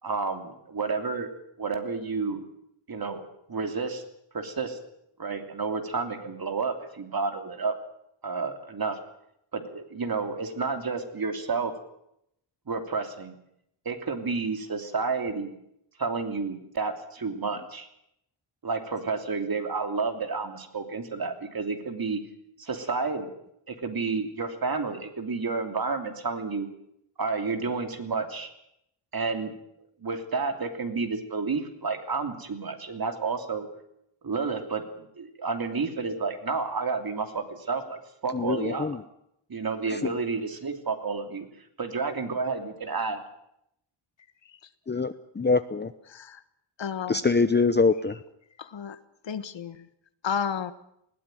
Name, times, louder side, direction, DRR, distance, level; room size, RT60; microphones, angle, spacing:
voice 1, 0.0-1.3 1.6-2.4 2.9-3.2 3.5-4.0 4.3-4.8 5.2-7.7 8.2-9.0 9.5-11.7 12.7-13.3 13.8-15.6 16.0-17.9 18.6-22.2 22.6-23.3 23.7-26.7 27.2-28.5 29.1-29.5 29.8-33.7 34.2-38.9 39.5-41.5 41.8-43.2, right 4 dB, 45° right, 6 dB, 3.0 m, -30 dB
voice 2, 38.3-39.0 39.9-40.1 44.9-45.9 47.1-48.2, left 4 dB, 20° left, 11 dB, 0.8 m, -24 dB
voice 3, 46.1-46.4 46.8-47.2 48.6-49.0 49.2-49.9 50.2-50.7, left 7 dB, 60° left, 13 dB, 1.5 m, -32 dB
20.0 x 17.0 x 9.1 m, 0.77 s
wide cardioid pair, 110°, 50 cm